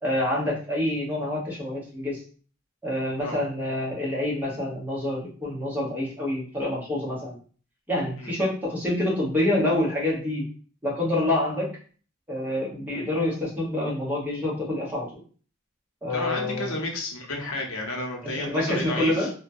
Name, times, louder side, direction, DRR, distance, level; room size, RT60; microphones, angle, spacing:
voice 1, 0.0-2.2 2.8-7.4 7.9-10.5 10.8-11.8 12.3-15.2 16.0-16.8 18.2-19.3, left 1 dB, 10° right, -5 dB, 0.9 m, -27 dB
voice 2, 16.1-19.3, left 2 dB, 85° left, 1 dB, 0.8 m, -31 dB
2.9 x 2.2 x 2.5 m, 0.41 s
head